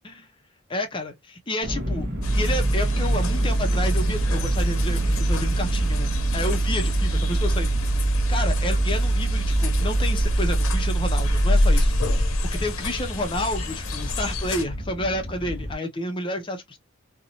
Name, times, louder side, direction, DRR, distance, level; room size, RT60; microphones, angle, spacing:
voice 1, 0.7-2.1 2.3-8.0 8.3-16.8, left 1 dB, 25° left, 0.5 m, -30 dB
sound 1, 1.6-15.7, equal, 45° right, 0.8 m, -31 dB
sound 2, 2.2-14.6, right 1 dB, 80° left, 0.7 m, -23 dB
2.5 x 2.0 x 2.8 m
head